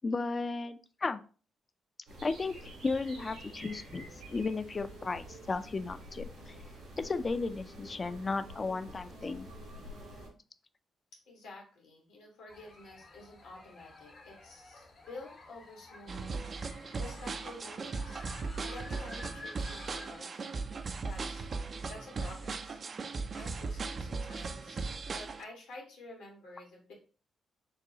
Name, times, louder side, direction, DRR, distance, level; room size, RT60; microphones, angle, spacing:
voice 1, 0.0-1.2 2.2-6.6 7.0-9.5, left 3 dB, 40° left, 11 dB, 0.4 m, -34 dB
sound 1, 2.1-10.3, equal, 85° right, 2.1 m, -48 dB
voice 2, 11.3-18.2 18.6-20.7 21.0-21.5 21.9-22.8 23.3-26.9, left 2 dB, 80° left, -1 dB, 1.5 m, -50 dB
sound 2, 12.5-20.2, left 2 dB, 65° left, 1.7 m, -51 dB
sound 3, 16.1-25.4, right 4 dB, 50° right, 0.4 m, -38 dB
6.3 x 2.3 x 2.8 m, 0.37 s
hypercardioid pair, 45°, 0 cm